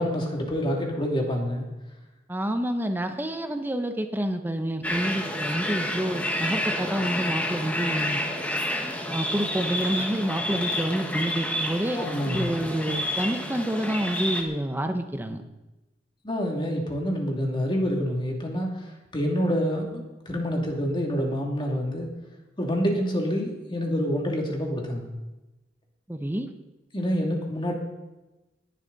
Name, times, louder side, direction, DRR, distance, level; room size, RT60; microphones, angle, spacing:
voice 1, 0.0-1.7 11.9-12.5 16.2-18.9 19.1-22.1 22.6-25.1 26.9-27.7, equal, 30° left, 0 dB, 2.6 m, -27 dB
voice 2, 2.3-8.2 9.1-15.4 26.1-26.5, right 1 dB, 10° right, 6 dB, 0.9 m, -28 dB
sound 1, 4.8-14.4, left 1 dB, 10° left, 1.5 m, -29 dB
19.0 x 11.0 x 4.1 m, 1.1 s
head